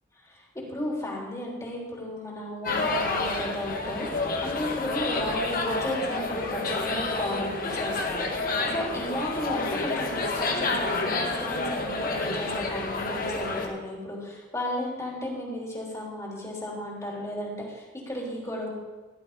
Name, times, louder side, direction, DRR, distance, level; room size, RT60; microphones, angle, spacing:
voice 1, 0.2-18.7, left 1 dB, 15° left, -4 dB, 3.5 m, -34 dB
sound 1, 2.6-13.7, left 3 dB, 50° left, 1.6 m, -29 dB
16.5 x 11.5 x 3.7 m, 1.2 s
head